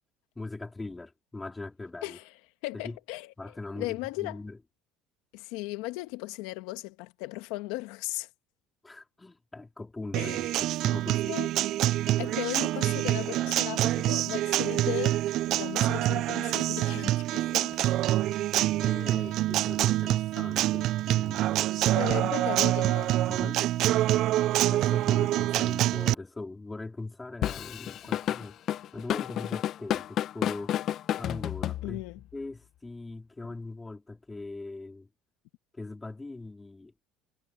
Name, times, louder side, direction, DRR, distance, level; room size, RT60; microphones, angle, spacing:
voice 1, 0.4-2.2 2.8-3.0 3.4-4.6 8.8-11.4 18.7-21.7 23.3-23.6 24.6-28.6 28.9-30.7 31.2-32.0 32.3-35.1 35.7-36.9, left 2 dB, 15° left, 4.2 m, -41 dB
voice 2, 2.0-2.3 2.6-4.4 5.3-8.3 10.1-10.5 11.3-11.5 12.2-15.2 15.6-17.8 19.1-19.2 21.9-23.1 31.8-32.2, left 20 dB, 80° left, 1.4 m, -36 dB
Acoustic guitar, 10.1-26.1, right 14 dB, 60° right, 0.3 m, -26 dB
Drum kit / Drum, 27.4-32.2, left 11 dB, 50° left, 1.2 m, -31 dB
supercardioid pair, 105°, 0 cm